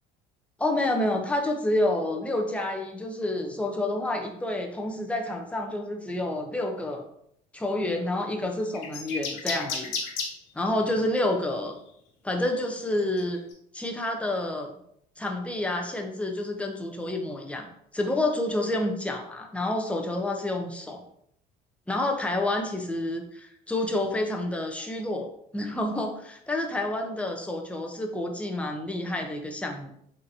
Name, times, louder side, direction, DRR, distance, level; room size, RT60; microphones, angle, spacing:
voice 1, 0.6-7.0 7.5-9.9 10.5-11.7 12.2-13.4 13.7-14.7 15.2-17.7 17.9-21.0 21.9-25.3 25.5-29.9, left 1 dB, 5° left, 2 dB, 0.7 m, -29 dB
sound 1, 8.7-10.3 11.5-11.7 12.4-13.5, left 5 dB, 80° left, 0.9 m, -32 dB
4.0 x 2.9 x 2.7 m, 0.71 s
supercardioid pair, 85°, 19 cm